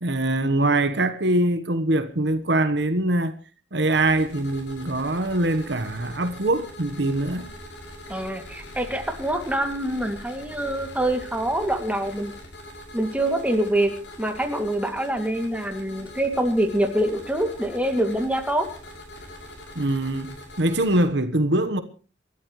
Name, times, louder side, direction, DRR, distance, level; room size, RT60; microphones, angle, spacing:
voice 1, 0.0-3.3 3.7-7.5 19.7-21.8, right 2 dB, 70° right, 1.3 m, -23 dB
sound 1, 3.9-21.0, left 1 dB, 75° left, 6.9 m, -42 dB
voice 2, 8.1-12.3 12.9-13.9 14.2-18.7, right 1 dB, 10° right, 2.5 m, -25 dB
28.0 x 13.0 x 3.2 m
head